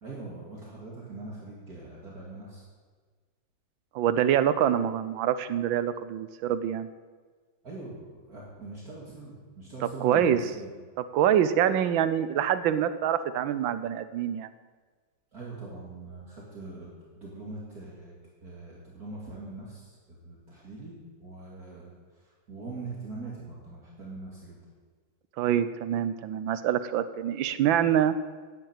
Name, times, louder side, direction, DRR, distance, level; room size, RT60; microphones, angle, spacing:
voice 1, 0.0-2.6 7.6-10.7 15.3-18.2 18.4-20.9 21.2-24.6, right 3 dB, 50° right, -4 dB, 2.7 m, -42 dB
voice 2, 3.9-6.9 9.8-10.4 11.0-14.5 25.4-28.1, right 10 dB, 80° right, 13 dB, 1.5 m, -25 dB
10.0 x 9.2 x 8.8 m, 1.5 s
omnidirectional pair, 2.1 m